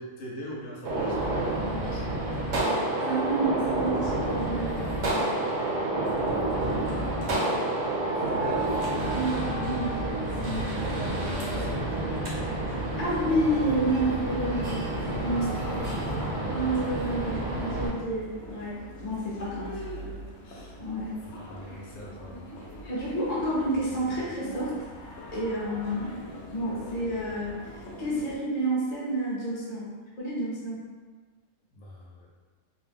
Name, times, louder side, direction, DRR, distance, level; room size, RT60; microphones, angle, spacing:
voice 1, 0.0-2.1 6.8-8.7 11.6-12.5 15.0-16.7 19.4-19.5 20.4-20.8 21.2-22.5 31.7-32.3, equal, 85° left, -4 dB, 1.1 m, -42 dB
Gunshot gunfire, 0.8-17.9, right 2 dB, 75° right, 1.1 m, -29 dB
voice 2, 3.0-4.9 9.1-10.7 13.0-15.8 16.5-19.7 20.8-21.1 21.7-21.8 22.9-24.7 25.3-26.2 26.5-29.9 30.2-30.8, right 1 dB, 35° left, -7 dB, 0.8 m, -30 dB
sound 1, 8.0-13.8, right 2 dB, 10° left, 0.7 m, -40 dB
sound 2, 9.8-28.4, equal, 65° left, 0.9 m, -43 dB
2.6 x 2.0 x 3.4 m, 1.4 s
omnidirectional pair, 1.3 m